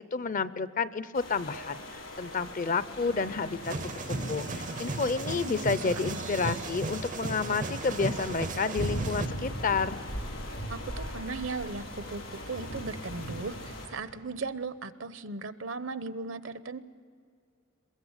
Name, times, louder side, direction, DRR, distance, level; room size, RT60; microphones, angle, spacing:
voice 1, 0.1-10.0, left 4 dB, 40° left, 15 dB, 0.6 m, -30 dB
sound 1, 1.1-13.9, equal, 80° left, 5.4 m, -39 dB
sound 2, 3.6-9.3, right 3 dB, 40° right, 0.5 m, -35 dB
voice 2, 5.3-6.3 10.7-16.8, right 3 dB, 75° right, 13 dB, 0.9 m, -38 dB
22.5 x 21.5 x 8.1 m, 2.3 s
head